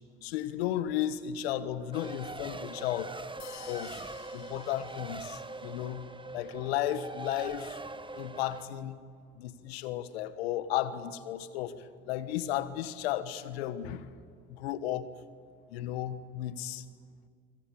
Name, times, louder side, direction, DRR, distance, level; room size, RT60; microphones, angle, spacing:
voice 1, 0.2-3.1 3.7-4.0 4.3-6.1 6.3-7.8 8.2-9.0 9.3-14.1 14.5-15.1 15.7-16.8, left 12 dB, 85° left, 14 dB, 1.3 m, -34 dB
Race car auto racing, 1.9-8.7, right 3 dB, 15° right, 1.4 m, -42 dB
sound 1, 3.4-5.7, left 11 dB, 65° left, 2.2 m, -52 dB
25.5 x 25.5 x 8.5 m, 2.1 s
hypercardioid pair, 55°, 30 cm